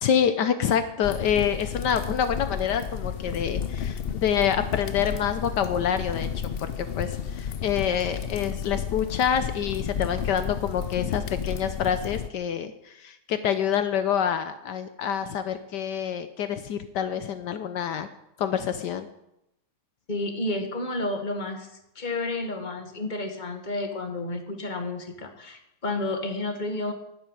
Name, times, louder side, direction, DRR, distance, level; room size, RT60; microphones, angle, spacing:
voice 1, 0.0-6.3 6.6-18.1 18.4-19.1, left 8 dB, 75° left, 10 dB, 1.4 m, -27 dB
sound 1, 1.0-12.3, left 7 dB, 60° left, 0.6 m, -32 dB
voice 2, 20.1-21.7 22.0-26.9, left 2 dB, 25° left, 5 dB, 1.9 m, -31 dB
12.0 x 10.5 x 9.1 m, 0.85 s
omnidirectional pair, 1.9 m